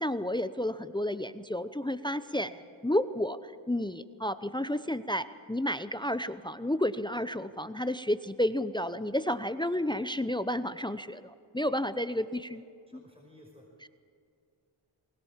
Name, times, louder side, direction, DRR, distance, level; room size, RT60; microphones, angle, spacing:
voice 1, 0.0-2.5 2.8-12.6 12.9-13.0 13.8-13.9, left 1 dB, 10° left, 13 dB, 0.7 m, -31 dB
voice 2, 12.9-13.7, left 1 dB, 10° right, -1 dB, 5.5 m, -56 dB
20.5 x 20.5 x 7.4 m, 2.4 s
cardioid pair, 55°, 49 cm